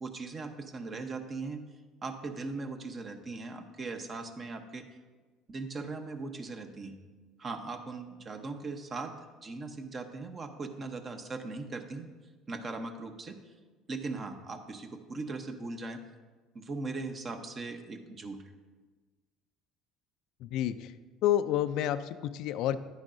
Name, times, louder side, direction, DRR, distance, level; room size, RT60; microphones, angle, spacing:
voice 1, 0.0-1.6 2.0-4.9 5.5-7.0 7.4-9.1 9.4-12.1 12.5-13.4 13.9-16.0 16.5-18.4, right 3 dB, 35° right, 6 dB, 0.9 m, -39 dB
voice 2, 20.4-20.9 21.2-22.8, left 11 dB, 65° left, 12 dB, 0.4 m, -29 dB
10.5 x 9.7 x 2.6 m, 1.4 s
hypercardioid pair, 75°, 0 cm